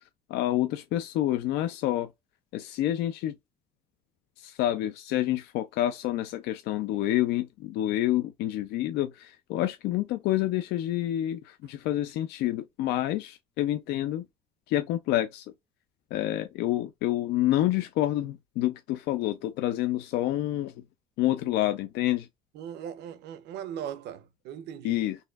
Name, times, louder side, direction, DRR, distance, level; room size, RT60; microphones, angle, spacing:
voice 1, 0.3-2.1 2.5-3.4 4.4-14.3 14.7-15.5 16.1-20.7 21.2-22.3 24.8-25.2, left 14 dB, 85° left, 0.5 m, -28 dB
voice 2, 22.5-25.0, right 9 dB, 80° right, 0.6 m, -39 dB
4.1 x 2.6 x 2.3 m
cardioid pair, 110°, 17 cm